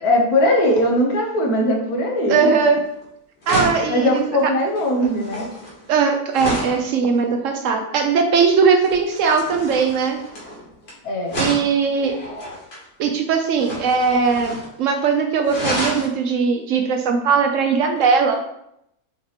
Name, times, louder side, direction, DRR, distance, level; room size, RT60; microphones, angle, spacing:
voice 1, 0.0-2.6 3.9-5.5 11.0-11.4, left 1 dB, 80° left, 1 dB, 1.4 m, -19 dB
voice 2, 2.3-2.8 3.5-4.1 5.9-10.2 11.4-12.1 13.0-18.4, right 5 dB, 70° right, 4 dB, 0.8 m, -19 dB
sound 1, 2.8-3.0 3.4-6.9 8.8-10.9 11.3-12.8 13.5-14.7 15.0-15.1 15.4-16.1 18.0-18.1, equal, 45° left, 1.5 m, -29 dB
5.7 x 2.9 x 3.2 m, 0.77 s
omnidirectional pair, 1.6 m